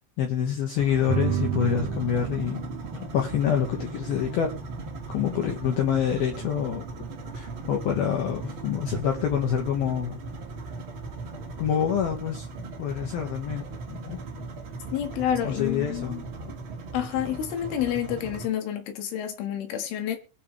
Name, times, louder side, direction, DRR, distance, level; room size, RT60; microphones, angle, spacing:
voice 1, 0.2-2.6 3.0-4.5 5.1-6.8 7.3-10.2 11.6-12.5 12.8-14.4 15.4-16.2 16.4-16.5, left 8 dB, 65° left, 2.9 m, -27 dB
sound 1, 0.8-18.5, right 3 dB, 70° right, 1.1 m, -38 dB
sound 2, 1.1-12.1, right 6 dB, 90° right, 1.8 m, -36 dB
voice 2, 14.9-16.2 16.9-20.2, left 10 dB, 85° left, 4.4 m, -29 dB
22.5 x 7.8 x 3.4 m
omnidirectional pair, 5.5 m